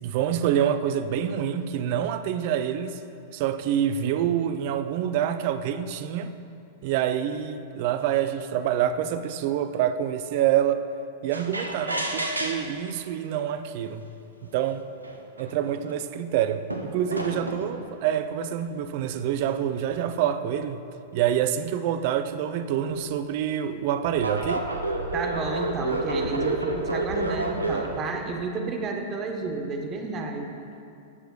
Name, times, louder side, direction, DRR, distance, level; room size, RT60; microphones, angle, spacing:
voice 1, 0.0-3.0 3.3-6.3 6.8-10.8 11.2-14.0 14.5-14.8 15.4-20.8 21.1-24.7, right 10 dB, 50° right, 11 dB, 0.4 m, -26 dB
sound 1, 11.3-12.9 13.9-14.0 14.7-14.8 15.0-15.9 16.7-17.8 18.7-20.2 22.8-23.0 24.0-28.0, right 2 dB, 85° right, 0.7 m, -30 dB
voice 2, 25.1-30.6, right 4 dB, 30° right, 3 dB, 1.0 m, -31 dB
18.0 x 6.7 x 2.3 m, 2.6 s
figure-of-eight pair, 95°, 0 cm